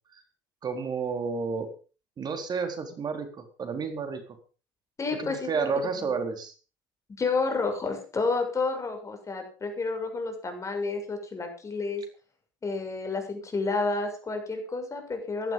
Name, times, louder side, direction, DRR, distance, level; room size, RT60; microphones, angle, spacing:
voice 1, 0.6-1.7 2.2-4.2 5.2-6.5, right 5 dB, 40° right, 7 dB, 4.1 m, -31 dB
voice 2, 5.0-5.7 7.2-12.0 12.6-15.5, left 3 dB, 30° left, 5 dB, 7.1 m, -30 dB
16.5 x 12.0 x 5.5 m, 0.37 s
hypercardioid pair, 70°, 11 cm